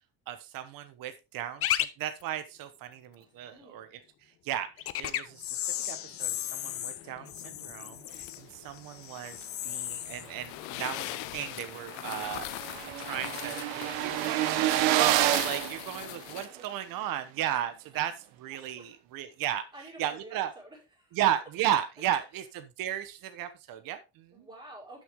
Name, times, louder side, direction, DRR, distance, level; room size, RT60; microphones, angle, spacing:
voice 1, 0.3-3.9 4.4-4.7 5.0-9.4 9.6-12.7 13.0-19.6 20.0-20.5 21.1-24.5, right 11 dB, 50° right, 9 dB, 1.2 m, -35 dB
sound 1, 1.6-1.8 2.2-2.3 4.8-11.6 11.9-12.4 13.1-13.3, left 12 dB, 30° left, 0.5 m, -35 dB
voice 2, 3.2-3.8 15.9-16.7 18.8-18.9 19.7-21.2 22.0-22.1 24.3-25.0, right 2 dB, 10° right, -4 dB, 5.4 m, -50 dB
sound 2, 8.1-16.5, left 20 dB, 75° left, 0.6 m, -41 dB
sound 3, 11.1-11.2 11.5-11.6 11.8-16.7, right 14 dB, 75° right, 1.0 m, -29 dB
12.0 x 6.5 x 3.6 m, 0.27 s
cardioid pair, 175°, 45 cm